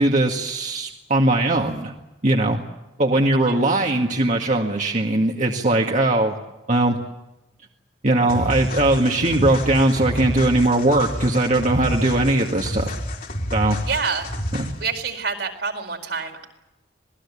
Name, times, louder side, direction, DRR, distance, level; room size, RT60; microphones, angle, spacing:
voice 1, 0.0-1.9 2.2-2.6 3.0-6.4 6.7-7.0 8.0-12.9 13.5-13.8 14.6-14.7, right 2 dB, 45° right, 1 dB, 2.0 m, -20 dB
sound 1, 8.3-14.9, equal, 50° left, 4.0 m, -29 dB
voice 2, 13.9-14.3 14.8-16.5, right 5 dB, 70° right, 4 dB, 4.6 m, -27 dB
26.5 x 20.0 x 8.6 m, 0.97 s
head